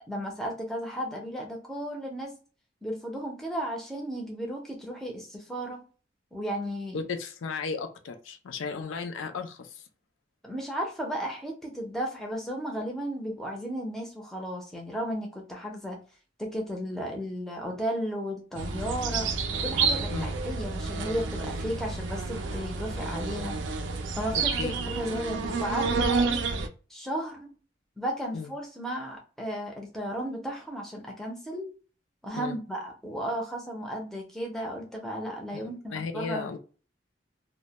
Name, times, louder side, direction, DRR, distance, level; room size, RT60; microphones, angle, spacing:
voice 1, 0.1-2.4 2.8-5.8 6.3-7.0 10.4-16.0 16.4-19.3 19.6-23.6 24.2-26.5 26.9-27.5 28.0-31.7 32.2-36.5, equal, ahead, -1 dB, 0.5 m, -34 dB
voice 2, 6.9-9.8 20.1-20.3 24.3-24.8 28.3-28.5 32.3-32.6 35.5-36.6, left 4 dB, 90° left, 7 dB, 0.4 m, -35 dB
sound 1, 18.5-26.7, right 4 dB, 75° right, 0.3 m, -30 dB
2.1 x 2.1 x 2.7 m, 0.37 s
head